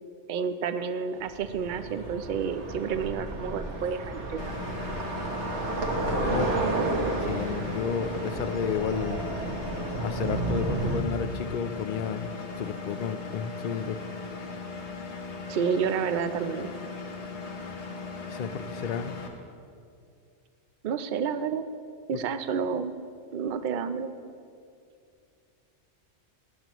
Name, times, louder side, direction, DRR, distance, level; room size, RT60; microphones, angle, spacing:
voice 1, 0.3-4.6 15.5-16.7 20.8-21.7 22.1-22.9 23.3-24.1, right 6 dB, 55° right, 9 dB, 0.6 m, -30 dB
sound 1, 1.2-11.0, right 2 dB, 80° right, 1.5 m, -31 dB
Engine, 4.4-19.3, left 4 dB, 75° left, 1.5 m, -38 dB
voice 2, 6.0-6.5 7.2-9.3 10.0-12.3 12.6-14.0 18.3-19.1 22.1-22.2, left 7 dB, 55° left, 10 dB, 0.6 m, -32 dB
18.5 x 10.5 x 3.0 m, 2.4 s
omnidirectional pair, 1.2 m